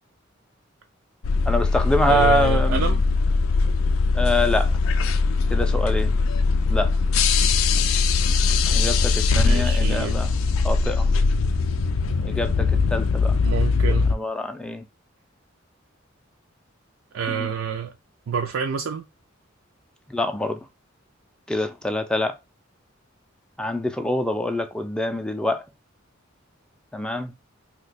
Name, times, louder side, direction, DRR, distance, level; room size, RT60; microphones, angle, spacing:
sound 1, 1.2-14.2, left 4 dB, 85° left, 0.4 m, -21 dB
voice 1, 1.4-3.0 4.1-4.8 5.5-6.2 6.7-7.0 8.7-10.3 10.6-11.1 12.2-13.4 14.1-14.8 17.3-17.5 20.1-20.6 21.5-22.3 23.6-25.6 26.9-27.3, left 1 dB, 5° left, 0.4 m, -25 dB
voice 2, 2.1-3.0 9.3-10.2 13.4-14.1 17.1-17.9 18.3-19.1, right 6 dB, 85° right, 0.4 m, -27 dB
2.8 x 2.2 x 4.0 m
head